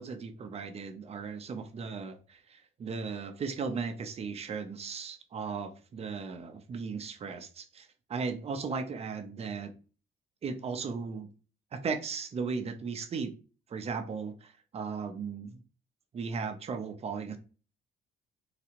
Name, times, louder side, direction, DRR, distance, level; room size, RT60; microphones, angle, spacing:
voice 1, 0.0-9.7 10.4-11.3 11.7-13.3 13.7-15.6 16.1-17.4, right 5 dB, 35° right, 7 dB, 0.7 m, -36 dB
4.0 x 2.3 x 2.9 m, 0.35 s
cardioid pair, 110°, 17 cm